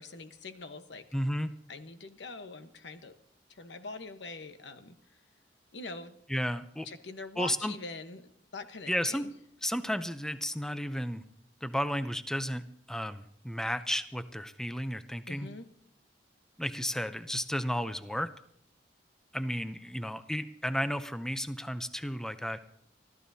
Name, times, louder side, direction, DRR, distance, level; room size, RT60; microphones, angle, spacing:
voice 1, 0.0-1.0 1.7-3.2 3.5-5.0 5.7-6.2 6.8-9.3 15.3-15.7, left 3 dB, 80° left, 8 dB, 1.1 m, -43 dB
voice 2, 1.1-1.5 6.3-6.9 7.4-7.7 8.9-9.3 9.6-11.2 11.6-15.5 16.6-18.3 19.3-22.6, equal, 5° left, 11 dB, 0.5 m, -33 dB
25.0 x 14.0 x 2.8 m, 0.66 s
head